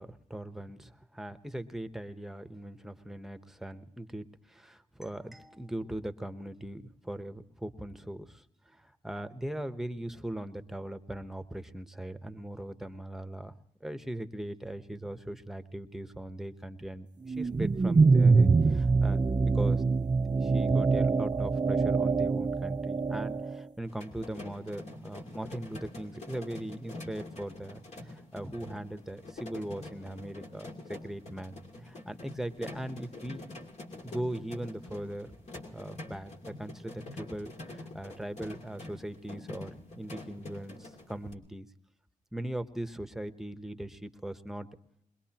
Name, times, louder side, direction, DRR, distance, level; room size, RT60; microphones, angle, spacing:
voice 1, 0.0-13.5 13.8-19.9 20.2-33.7 34.0-35.3 35.7-41.7 42.3-44.7, right 1 dB, 5° right, 9 dB, 1.0 m, -40 dB
sound 1, 17.3-23.6, right 4 dB, 30° right, 0.6 m, -24 dB
sound 2, 23.8-41.3, left 2 dB, 60° left, 2.6 m, -46 dB
22.0 x 21.5 x 2.9 m, 0.78 s
cardioid pair, 65°, 13 cm